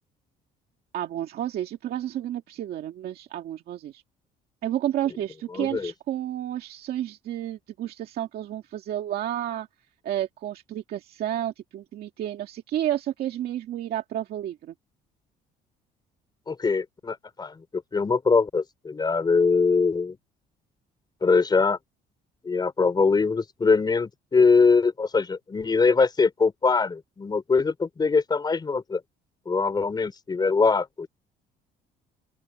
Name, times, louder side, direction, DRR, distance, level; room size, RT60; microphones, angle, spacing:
voice 1, 0.9-4.0 4.6-9.7 10.0-14.7, right 12 dB, 65° right, 2.2 m, -31 dB
voice 2, 5.5-5.9 16.5-20.2 21.2-21.8 22.4-29.0 29.4-31.1, left 4 dB, 25° left, 3.5 m, -22 dB
open air
cardioid pair, 110°, 17 cm